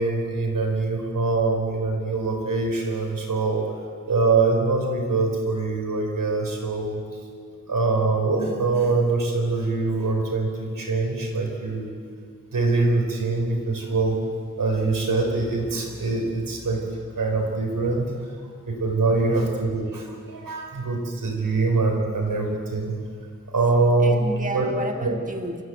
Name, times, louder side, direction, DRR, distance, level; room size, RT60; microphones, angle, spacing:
voice 1, 0.0-3.7 4.1-7.0 7.7-11.9 12.5-14.2 14.6-18.1 18.7-22.9 23.5-24.2 24.5-24.7 25.0-25.1, right 3 dB, 85° right, 2 dB, 4.7 m, -23 dB
voice 2, 19.0-19.5 23.6-25.6, right 1 dB, 25° right, 4 dB, 1.5 m, -33 dB
29.0 x 15.0 x 8.1 m, 2.1 s
wide cardioid pair, 105°, 32 cm